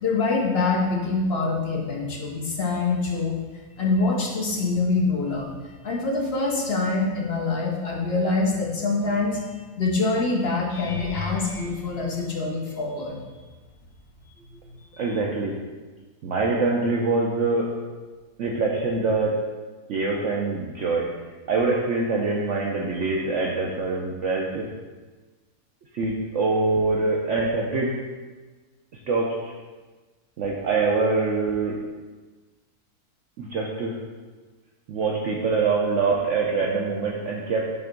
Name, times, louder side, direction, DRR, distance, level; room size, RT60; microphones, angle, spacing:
voice 1, 0.0-3.4 3.7-5.5 5.8-9.4 9.8-13.2 14.9-15.2, left 3 dB, 50° left, -2 dB, 0.9 m, -25 dB
sound 1, 10.7-13.0 13.7-14.1 14.5-14.6 19.0-19.1, left 3 dB, 75° left, 1.3 m, -37 dB
voice 2, 15.0-15.5 16.2-17.7 18.4-19.4 19.9-21.1 21.5-24.7 25.9-27.9 29.1-29.5 30.4-31.7 33.4-33.9 34.9-37.7, right 3 dB, 65° right, -2 dB, 0.9 m, -24 dB
5.8 x 3.4 x 5.1 m, 1.3 s
omnidirectional pair, 1.6 m